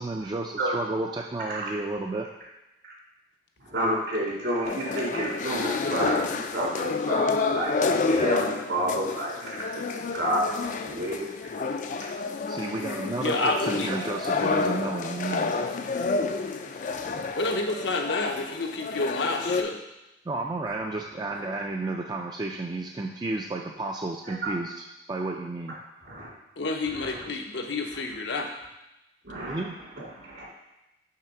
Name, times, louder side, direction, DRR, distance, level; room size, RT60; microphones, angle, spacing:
voice 1, 0.0-2.3 12.5-15.5 20.3-25.7 29.4-29.7, right 2 dB, 25° right, 1 dB, 0.4 m, -32 dB
voice 2, 3.7-7.8 8.1-9.8 10.1-10.5 10.9-11.3 16.9-17.1 21.4-21.5 24.3-24.5 26.0-26.3 27.0-27.1 29.2-29.6 30.0-30.5, right 1 dB, 70° right, -5 dB, 2.4 m, -30 dB
sound 1, 4.6-19.6, left 4 dB, 45° left, 0.4 m, -29 dB
voice 3, 13.2-13.9 17.3-19.8 26.6-28.5, left 3 dB, 75° left, 3 dB, 0.8 m, -29 dB
5.7 x 3.6 x 5.9 m, 0.96 s
head